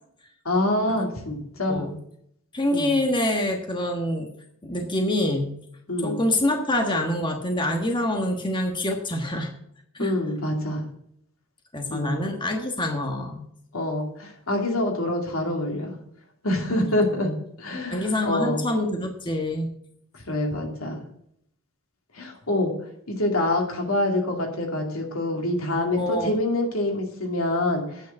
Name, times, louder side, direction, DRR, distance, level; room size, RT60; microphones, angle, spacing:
voice 1, 0.4-1.9 2.7-2.9 5.9-6.2 10.0-10.8 11.9-12.2 13.7-16.0 16.4-17.3 17.6-18.6 20.3-21.0 22.1-22.7 23.1-28.0, left 1 dB, 75° left, 2 dB, 2.5 m, -26 dB
voice 2, 2.5-4.3 4.6-5.5 6.0-9.5 9.9-10.1 11.7-13.4 17.9-19.7 26.0-26.3, left 1 dB, 20° left, 3 dB, 1.3 m, -26 dB
9.1 x 6.8 x 7.5 m, 0.71 s
head